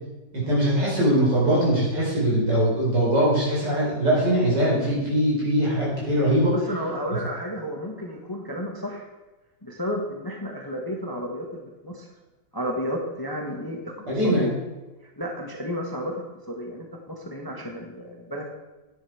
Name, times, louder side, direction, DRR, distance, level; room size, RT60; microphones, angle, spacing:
voice 1, 0.3-6.5 14.1-14.5, right 1 dB, 75° right, -6 dB, 5.2 m, -21 dB
voice 2, 6.5-9.0 9.6-12.1 12.5-14.5 15.2-16.2 16.5-18.5, equal, 15° left, 1 dB, 1.0 m, -32 dB
9.7 x 9.7 x 4.7 m, 1.2 s
omnidirectional pair, 1.9 m